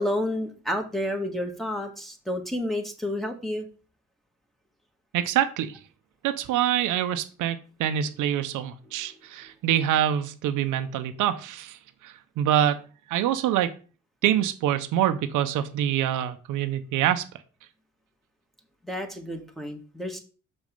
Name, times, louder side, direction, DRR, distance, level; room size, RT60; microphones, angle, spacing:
voice 1, 0.0-3.7 18.8-20.2, left 1 dB, ahead, 1 dB, 1.8 m, -30 dB
voice 2, 5.1-5.8 6.2-11.8 12.0-12.8 13.1-13.7 14.2-17.2, right 11 dB, 85° right, 9 dB, 0.8 m, -25 dB
6.3 x 5.2 x 5.3 m, 0.37 s
cardioid pair, 90°, 30 cm